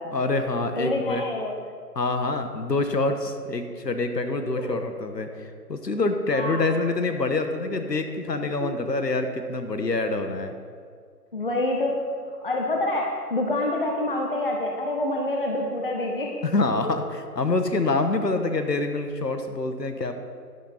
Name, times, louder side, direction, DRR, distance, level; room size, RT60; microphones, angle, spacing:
voice 1, 0.1-1.2 1.9-10.5 16.4-20.1, left 3 dB, 80° left, 7 dB, 1.4 m, -26 dB
voice 2, 0.8-1.6 4.6-4.8 6.3-6.7 8.6-8.7 11.3-16.4, left 1 dB, 35° left, 0 dB, 0.9 m, -27 dB
11.5 x 11.0 x 4.4 m, 2.1 s
figure-of-eight pair, 160°, 49 cm